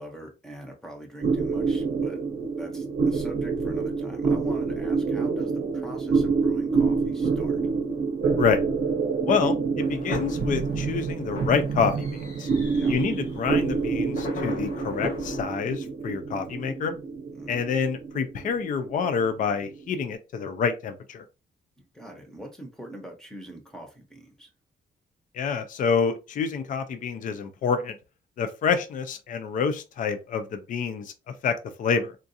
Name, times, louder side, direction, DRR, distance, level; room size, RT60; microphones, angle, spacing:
voice 1, 0.0-2.2 2.6-7.6 12.7-13.0 17.3-17.7 21.9-24.5, right 1 dB, 5° left, 0.8 m, -42 dB
sound 1, 1.2-20.0, right 4 dB, 55° right, 0.7 m, -27 dB
sound 2, 9.8-15.4, left 2 dB, 65° left, 1.6 m, -37 dB
voice 2, 9.9-12.5 12.9-16.9 17.5-21.2 25.3-28.0 28.4-31.1 31.4-32.2, left 6 dB, 45° left, 0.4 m, -27 dB
3.7 x 2.4 x 2.6 m
wide cardioid pair, 180°, 18 cm